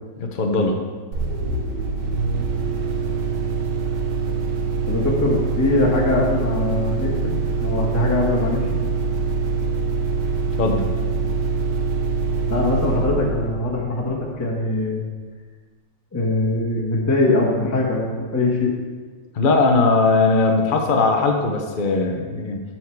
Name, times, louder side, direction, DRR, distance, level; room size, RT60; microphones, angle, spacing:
voice 1, 0.2-0.8 10.6-10.8 19.3-22.6, left 3 dB, 65° left, 2 dB, 0.5 m, -19 dB
sound 1, 1.1-14.6, right 4 dB, 70° right, 1.6 m, -24 dB
voice 2, 4.8-8.7 12.5-15.0 16.1-18.7, left 2 dB, 10° left, -4 dB, 1.1 m, -22 dB
13.0 x 4.6 x 4.7 m, 1.5 s
omnidirectional pair, 2.0 m